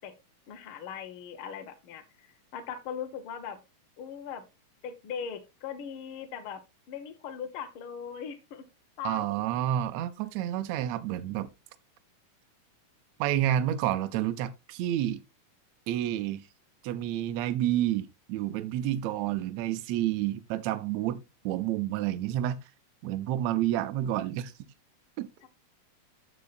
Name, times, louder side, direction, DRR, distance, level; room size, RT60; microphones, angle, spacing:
voice 1, 0.5-3.6 4.0-4.4 4.8-6.6 6.9-8.6 9.0-9.6 19.2-19.8 24.0-24.1 25.4-25.5, left 7 dB, 65° left, 1.3 m, -40 dB
voice 2, 9.0-11.5 13.2-15.2 15.9-16.5 16.8-22.6 23.0-24.5 25.2-25.3, right 12 dB, 85° right, 1.5 m, -29 dB
13.0 x 5.5 x 2.4 m
omnidirectional pair, 3.7 m